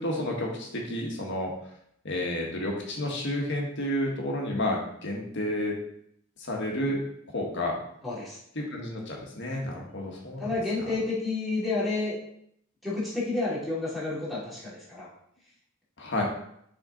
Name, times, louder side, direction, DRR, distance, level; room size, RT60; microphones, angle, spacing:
voice 1, 0.0-1.5 2.0-5.7 6.4-7.0 7.3-7.8 8.5-10.5 10.8-10.9 16.0-16.2, left 1 dB, 55° left, -1 dB, 1.5 m, -30 dB
voice 2, 8.0-8.4 10.4-12.1 12.8-15.1, left 3 dB, ahead, -8 dB, 2.5 m, -30 dB
6.5 x 4.3 x 3.9 m, 0.71 s
head